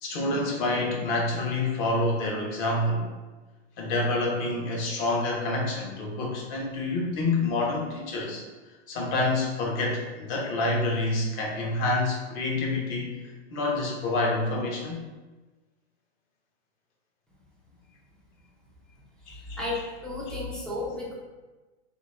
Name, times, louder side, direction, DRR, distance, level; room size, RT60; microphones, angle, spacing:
voice 1, 0.0-3.1 3.8-8.4 8.9-13.1 13.5-15.0 19.3-19.6 20.3-20.4, left 2 dB, 45° left, -1 dB, 1.0 m, -27 dB
voice 2, 19.6-21.2, left 2 dB, ahead, -5 dB, 0.3 m, -33 dB
2.9 x 2.8 x 3.4 m, 1.2 s
hypercardioid pair, 125°, 33 cm